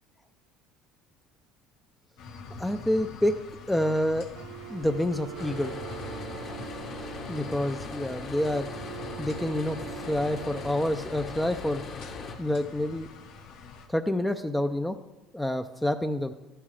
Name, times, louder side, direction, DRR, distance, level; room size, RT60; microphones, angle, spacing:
sound 1, 2.2-13.9, left 4 dB, 75° left, 1.6 m, -45 dB
voice 1, 2.6-3.3 3.7-4.3 4.7-5.8 7.3-8.7 9.2-11.9 12.4-13.1 13.9-15.0 15.3-16.3, left 1 dB, 5° left, 8 dB, 0.4 m, -28 dB
sound 2, 4.4-12.4, right 15 dB, 70° right, 0.4 m, -44 dB
sound 3, 5.4-12.4, left 4 dB, 40° left, 1.2 m, -40 dB
13.5 x 11.0 x 3.2 m, 1.0 s
cardioid pair, 140°, 0 cm